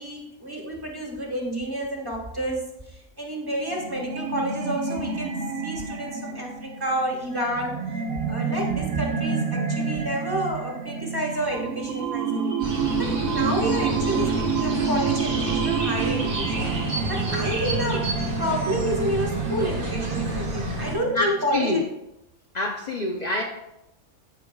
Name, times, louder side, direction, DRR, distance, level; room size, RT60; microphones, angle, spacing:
voice 1, 0.0-2.7 3.2-7.8 8.3-21.8, right 1 dB, 15° right, -1 dB, 1.3 m, -30 dB
sound 1, 3.6-21.6, right 5 dB, 50° right, 0.9 m, -29 dB
sound 2, 12.6-21.0, right 1 dB, 85° right, 2.3 m, -30 dB
voice 2, 21.1-21.8 22.5-23.4, left 2 dB, 45° left, 1 dB, 0.6 m, -26 dB
14.5 x 5.1 x 2.3 m, 0.88 s
omnidirectional pair, 1.4 m